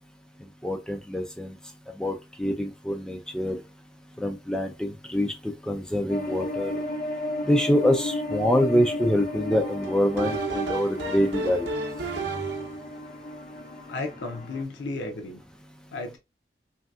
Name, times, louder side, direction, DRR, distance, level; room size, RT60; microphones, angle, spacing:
voice 1, 0.6-1.5 2.0-3.6 4.2-6.7 7.5-11.7, equal, 5° left, 0.3 m, -25 dB
sound 1, 6.1-14.6, left 1 dB, 45° left, 0.7 m, -33 dB
Mini News Jingle, 9.5-12.9, right 3 dB, 70° right, 0.6 m, -32 dB
voice 2, 13.9-15.4 15.9-16.2, left 2 dB, 85° left, 0.5 m, -33 dB
3.2 x 2.6 x 2.2 m
head